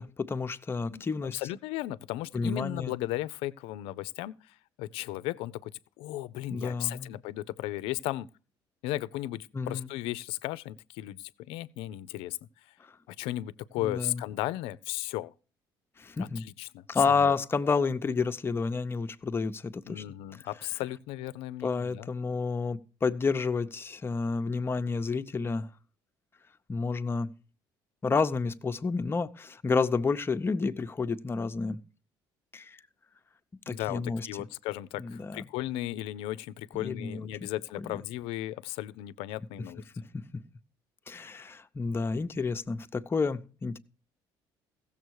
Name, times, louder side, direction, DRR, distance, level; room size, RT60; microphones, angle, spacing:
voice 1, 0.0-1.4 2.3-2.9 6.5-7.1 9.5-9.9 13.8-14.2 16.0-16.4 16.9-20.0 21.6-25.7 26.7-27.3 28.0-31.8 32.5-32.8 33.7-34.3 35.0-35.4 36.8-37.3 40.1-40.2 41.1-43.8, left 4 dB, 25° left, 0.7 m, -30 dB
voice 2, 0.8-5.7 6.0-8.3 8.8-12.4 13.1-15.3 16.2-17.3 19.9-22.1 33.7-39.8, left 15 dB, 85° left, 0.5 m, -35 dB
15.5 x 7.1 x 4.7 m
cardioid pair, 100°, 9 cm